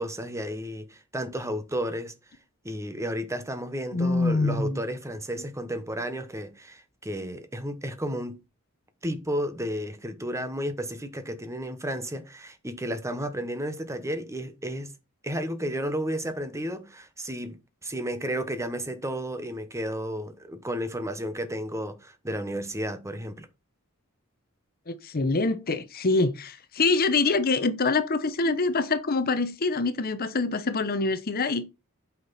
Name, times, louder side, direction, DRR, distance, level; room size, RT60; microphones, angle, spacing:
voice 1, 0.0-2.1 2.6-8.4 9.0-14.9 15.2-23.5, equal, 15° right, 1.1 m, -32 dB
voice 2, 3.9-4.8 24.9-31.6, left 3 dB, 45° left, 0.8 m, -25 dB
8.6 x 5.9 x 4.1 m
head